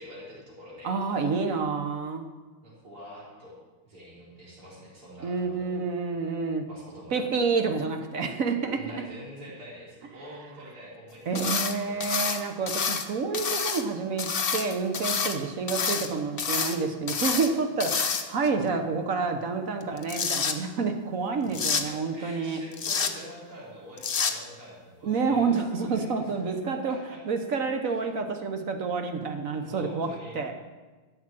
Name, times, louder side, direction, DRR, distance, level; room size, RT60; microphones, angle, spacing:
voice 1, 0.0-1.3 2.6-3.6 3.8-5.9 6.6-7.4 8.8-12.4 21.4-27.2 27.8-28.0 29.6-30.4, equal, 85° right, -6 dB, 4.9 m, -46 dB
voice 2, 0.8-2.2 5.2-6.7 7.1-9.0 11.3-22.6 25.0-27.0 27.3-30.1 30.3-30.5, right 4 dB, 50° right, 6 dB, 1.1 m, -28 dB
sound 1, 11.3-11.7 12.0-13.1 13.3-13.8 14.2-15.4 15.7-16.1 16.4-16.8 17.1-17.5 17.8-18.5 19.8-20.5 21.5-21.8 22.7-23.1 24.0-24.3, left 6 dB, 75° left, 0.5 m, -28 dB
13.0 x 7.6 x 7.6 m, 1.3 s
omnidirectional pair, 2.3 m